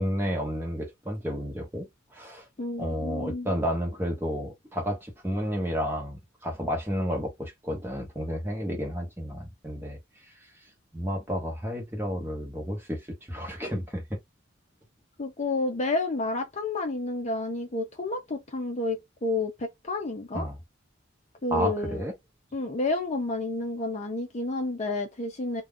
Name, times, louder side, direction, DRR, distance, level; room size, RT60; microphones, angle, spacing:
voice 1, 0.0-1.9 2.1-2.5 2.8-10.0 10.9-13.0 13.3-14.2 20.3-20.6 21.5-22.1, equal, 10° right, 1.0 m, -31 dB
voice 2, 2.6-3.6 15.2-20.5 21.4-22.0 22.5-25.6, left 2 dB, 35° left, 0.5 m, -30 dB
2.3 x 2.2 x 3.6 m
head